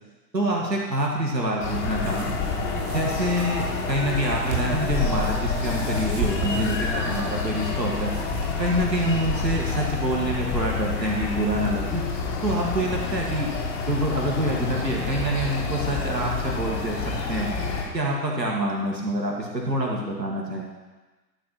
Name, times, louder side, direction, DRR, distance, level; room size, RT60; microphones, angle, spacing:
voice 1, 0.3-2.3 2.9-8.1 8.6-12.0 12.4-13.5 13.9-17.5 17.9-20.7, right 1 dB, 80° right, -1 dB, 2.0 m, -26 dB
sound 1, 1.6-17.8, left 4 dB, 5° left, 0.5 m, -28 dB
sound 2, 2.0-8.5, right 6 dB, 25° right, 1.0 m, -36 dB
sound 3, 5.9-16.7, left 7 dB, 70° left, 0.7 m, -38 dB
11.5 x 4.5 x 5.7 m, 1.2 s
figure-of-eight pair, 115°, 50 cm